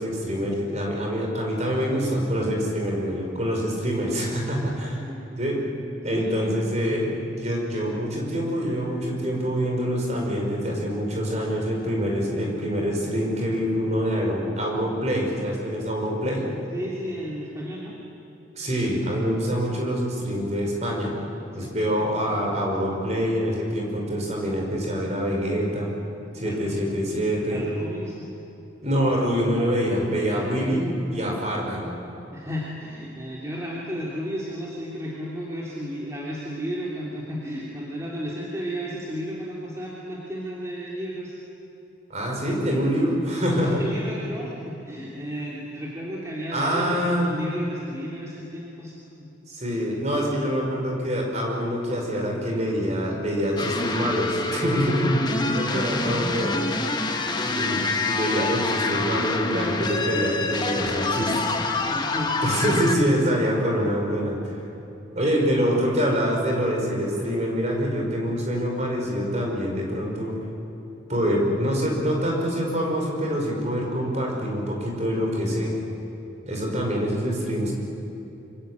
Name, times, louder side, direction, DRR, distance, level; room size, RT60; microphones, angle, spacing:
voice 1, 0.0-5.0 5.4-5.6 6.0-16.5 18.6-21.1 21.5-25.9 26.3-27.7 28.8-31.9 42.1-43.8 46.5-47.4 49.5-56.5 57.4-61.5 62.4-64.4 65.1-70.4 71.1-75.7 76.5-77.7, equal, 35° right, -1 dB, 5.8 m, -25 dB
voice 2, 4.5-5.2 6.1-6.5 16.7-17.9 21.5-21.7 26.4-26.8 27.5-28.3 30.3-30.4 32.3-41.3 43.6-46.9 47.2-49.3 55.2-55.5 61.9-62.8, equal, 15° right, -5 dB, 3.1 m, -33 dB
sound 1, 53.6-63.0, left 3 dB, 20° left, 1.3 m, -27 dB
27.0 x 25.0 x 8.2 m, 2.9 s
head